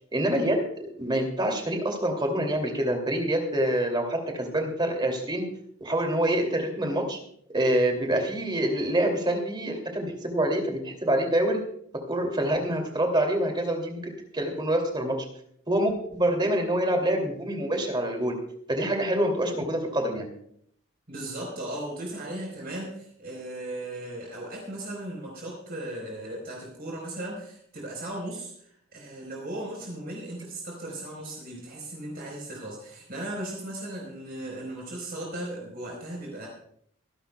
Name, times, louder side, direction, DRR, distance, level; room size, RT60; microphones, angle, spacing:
voice 1, 0.1-0.6 1.0-5.4 5.8-7.2 7.5-11.6 12.1-15.1 15.7-18.4 18.7-20.3, right 1 dB, 20° right, 3 dB, 2.7 m, -26 dB
voice 2, 21.1-36.5, right 1 dB, 45° right, -2 dB, 4.3 m, -37 dB
24.0 x 11.5 x 2.3 m, 0.67 s
head